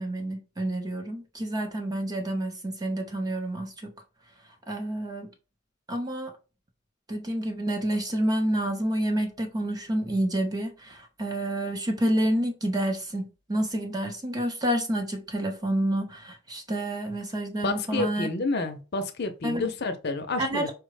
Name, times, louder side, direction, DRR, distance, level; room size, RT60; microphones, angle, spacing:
voice 1, 0.0-3.9 4.7-5.3 5.9-6.3 7.1-18.3 19.4-19.7 20.4-20.7, right 1 dB, 20° right, 0.7 m, -29 dB
voice 2, 17.6-20.7, left 3 dB, 50° left, 0.6 m, -29 dB
4.7 x 2.1 x 4.8 m
head